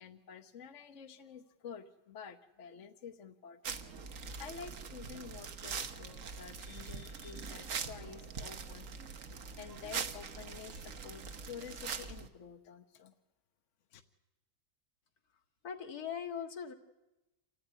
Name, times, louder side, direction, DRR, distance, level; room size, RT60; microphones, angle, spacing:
voice 1, 0.0-3.8 4.4-8.9 9.6-13.1 13.9-14.0, left 7 dB, 55° left, 7 dB, 1.2 m, -49 dB
sound 1, 3.6-12.3, right 5 dB, 55° right, 1.4 m, -43 dB
voice 2, 15.6-16.7, left 7 dB, 70° left, 5 dB, 2.2 m, -40 dB
27.5 x 15.0 x 9.6 m, 0.99 s
omnidirectional pair, 1.7 m